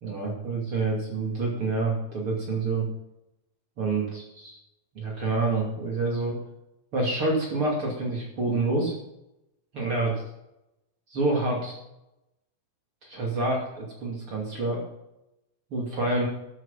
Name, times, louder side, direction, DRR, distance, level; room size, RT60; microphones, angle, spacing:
voice 1, 0.0-2.8 3.8-4.2 4.9-6.4 6.9-8.9 9.7-10.2 11.1-11.8 13.0-14.8 15.7-16.2, right 3 dB, 40° right, -2 dB, 3.0 m, -27 dB
13.0 x 7.9 x 5.8 m, 0.87 s
omnidirectional pair, 4.2 m